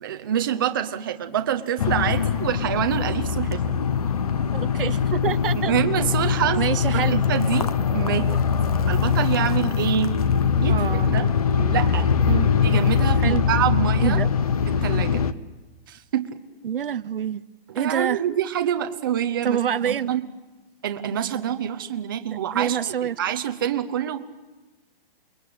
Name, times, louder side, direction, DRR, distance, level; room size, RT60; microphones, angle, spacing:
voice 1, 0.0-3.7 5.5-6.7 6.9-8.4 8.9-10.2 10.6-10.8 11.0-11.3 11.6-12.1 12.6-14.2 14.7-15.2 15.9-16.3 17.7-20.2 20.8-24.2, right 10 dB, 20° right, 0.8 m, -26 dB
sound 1, 1.8-15.3, left 6 dB, 40° left, 0.8 m, -22 dB
voice 2, 4.5-5.7 6.6-7.2 10.7-11.3 12.3-12.5 13.2-13.4 14.0-14.3 16.6-17.4 17.7-18.2 19.4-20.1 22.5-23.2, right 8 dB, 65° right, 0.8 m, -26 dB
29.0 x 21.0 x 8.6 m
hypercardioid pair, 175°, 30 cm